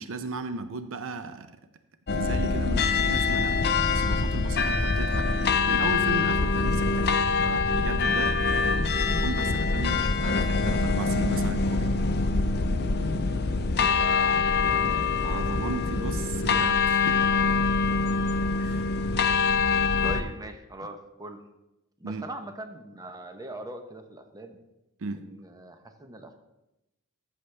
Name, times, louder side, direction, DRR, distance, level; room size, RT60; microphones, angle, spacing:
voice 1, 0.0-1.5 2.2-8.4 9.1-11.9 15.2-17.2 18.6-18.9 22.0-22.2 25.0-25.2, right 3 dB, 65° right, 10 dB, 0.6 m, -36 dB
sound 1, 2.1-20.2, left 4 dB, 50° left, 0.6 m, -24 dB
voice 2, 13.9-15.2 20.0-21.4 22.0-24.6 25.2-26.3, right 2 dB, 15° right, 6 dB, 0.8 m, -41 dB
13.5 x 6.5 x 3.3 m, 0.94 s
head